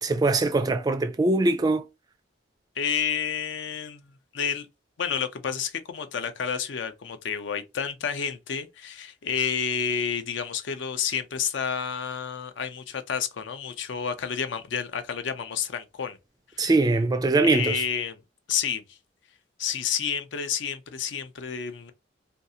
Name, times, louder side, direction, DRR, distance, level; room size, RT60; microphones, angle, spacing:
voice 1, 0.0-1.8 16.6-17.8, right 2 dB, 20° right, 0.3 m, -22 dB
voice 2, 2.8-4.7 5.0-16.2 16.5-16.7 17.4-18.2 18.5-19.0 19.6-21.9, left 7 dB, 70° left, 0.5 m, -30 dB
2.6 x 2.3 x 2.6 m
head